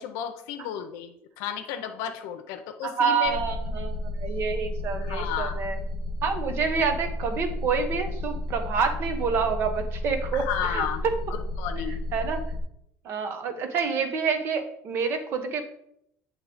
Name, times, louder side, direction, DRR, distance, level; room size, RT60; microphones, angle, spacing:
voice 1, 0.0-3.3 5.0-5.6 10.3-11.0 11.6-12.0, left 9 dB, 80° left, 6 dB, 0.7 m, -32 dB
voice 2, 2.8-5.8 6.2-11.1 12.1-12.4 13.0-15.6, right 5 dB, 45° right, 7 dB, 1.0 m, -28 dB
sound 1, 3.2-12.6, left 1 dB, 70° right, 1.5 m, -32 dB
7.7 x 3.3 x 5.0 m, 0.75 s
cardioid pair, 140°, 5 cm